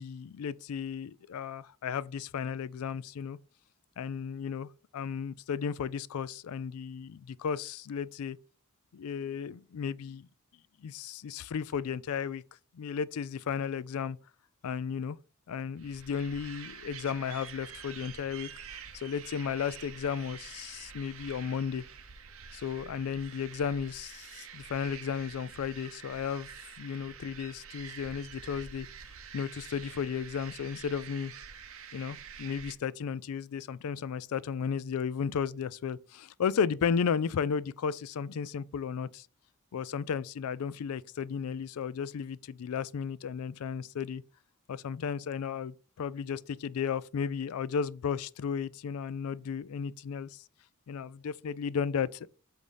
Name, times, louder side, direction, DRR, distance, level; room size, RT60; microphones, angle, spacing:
voice 1, 0.0-3.4 4.0-8.4 8.9-10.3 10.8-12.4 12.7-14.2 14.6-15.2 15.5-18.5 18.9-21.8 22.5-26.5 26.8-28.9 29.3-31.3 31.9-39.3 39.7-44.2 44.7-50.4 50.9-52.3, left 7 dB, 80° left, 0.4 m, -34 dB
sound 1, 15.8-32.7, right 7 dB, 70° right, 0.9 m, -47 dB
8.1 x 2.7 x 5.5 m
head